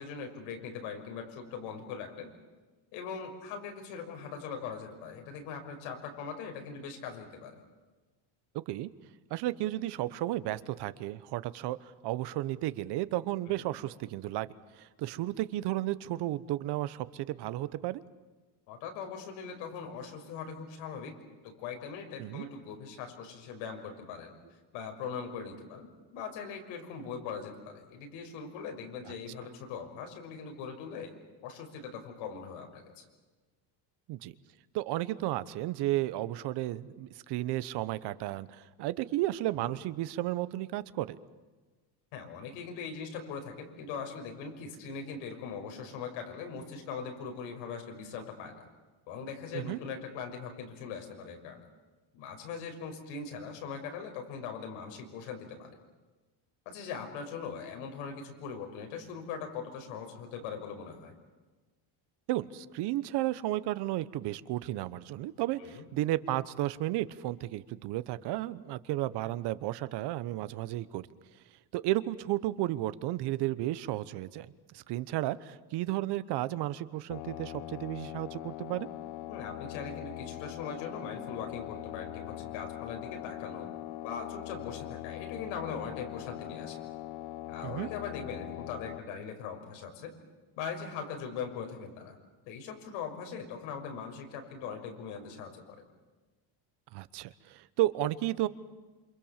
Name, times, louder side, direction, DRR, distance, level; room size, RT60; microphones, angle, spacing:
voice 1, 0.0-2.3 2.9-7.6 13.5-13.7 18.7-21.1 21.4-24.3 24.7-31.1 31.4-33.0 39.5-39.7 42.1-48.7 49.1-51.6 52.1-55.7 56.7-61.1 65.6-65.8 79.3-83.7 84.0-86.8 87.5-90.1 90.6-92.2 92.5-95.8, left 6 dB, 85° left, 4 dB, 6.1 m, -41 dB
voice 2, 9.3-14.5 14.8-18.0 22.2-22.4 34.1-34.3 34.7-41.2 49.5-49.8 62.3-71.1 71.7-78.9 87.6-87.9 96.9-98.5, right 15 dB, 55° right, 15 dB, 1.1 m, -33 dB
sound 1, 77.1-89.0, left 14 dB, 60° left, 0.9 m, -42 dB
28.0 x 26.5 x 7.4 m, 1.3 s
cardioid pair, 160°, 47 cm